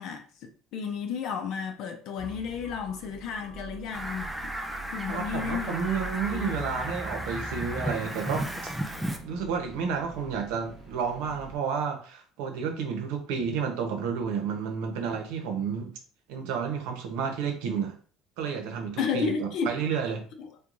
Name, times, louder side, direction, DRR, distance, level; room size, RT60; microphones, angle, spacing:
voice 1, 0.0-4.5 4.9-5.8 6.2-6.6 19.0-19.7 20.4-20.5, left 6 dB, 45° left, 0.5 m, -32 dB
sound 1, 2.2-11.6, right 1 dB, 20° right, 1.0 m, -43 dB
Fowl, 3.9-9.2, right 1 dB, 5° right, 0.3 m, -34 dB
voice 2, 5.1-8.7 9.2-16.0 16.3-18.0 18.4-20.3, right 6 dB, 90° right, 0.9 m, -31 dB
4.5 x 2.3 x 2.6 m
cardioid pair, 180°, 0 cm